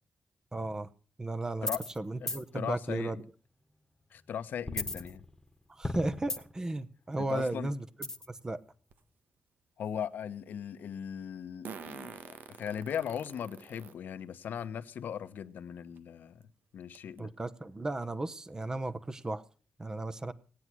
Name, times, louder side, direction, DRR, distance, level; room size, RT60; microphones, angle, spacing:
voice 1, 0.5-0.9 1.2-1.7 2.0-3.2 5.7-8.6 17.2-19.4 19.8-20.3, right 2 dB, 20° right, 0.9 m, -35 dB
sound 1, 1.6-2.0 2.3-2.4 4.7-5.5 5.8-6.7 8.0-8.4, left 2 dB, 15° left, 1.4 m, -35 dB
voice 2, 2.2-3.1 4.1-5.2 7.2-7.7 9.8-12.2 12.5-16.4 16.7-17.3, left 8 dB, 85° left, 1.1 m, -38 dB
Fart, 8.9-9.0 11.6-13.9 14.6-14.7 16.0-16.1 16.4-16.5 16.9-17.2, right 6 dB, 85° right, 1.3 m, -46 dB
18.0 x 9.8 x 6.1 m
wide cardioid pair, 115°, 3 cm